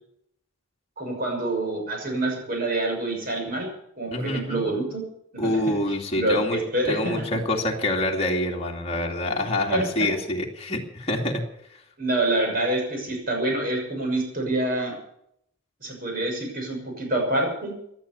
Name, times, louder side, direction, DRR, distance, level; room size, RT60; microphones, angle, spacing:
voice 1, 1.0-3.7 4.0-5.0 5.3-5.5 6.1-7.1 9.7-9.8 12.0-14.9 15.8-17.7, right 2 dB, 45° right, 2 dB, 6.5 m, -26 dB
voice 2, 4.1-4.6 5.4-6.6 6.8-11.4 11.7-11.8, left 1 dB, 30° left, 0 dB, 2.5 m, -26 dB
17.5 x 11.5 x 7.1 m, 0.73 s
head